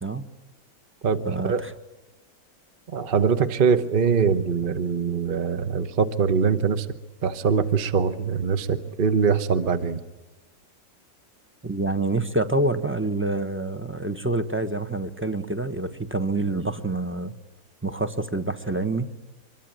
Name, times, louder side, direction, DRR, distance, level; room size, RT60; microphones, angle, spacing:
voice 1, 0.0-0.3 1.3-1.7 11.6-17.3 17.8-19.1, right 2 dB, 10° right, 10 dB, 0.8 m, -27 dB
voice 2, 1.0-1.6 2.9-6.9 7.2-10.0, right 6 dB, 35° right, 11 dB, 1.0 m, -23 dB
25.5 x 22.0 x 9.1 m, 1.1 s
omnidirectional pair, 2.0 m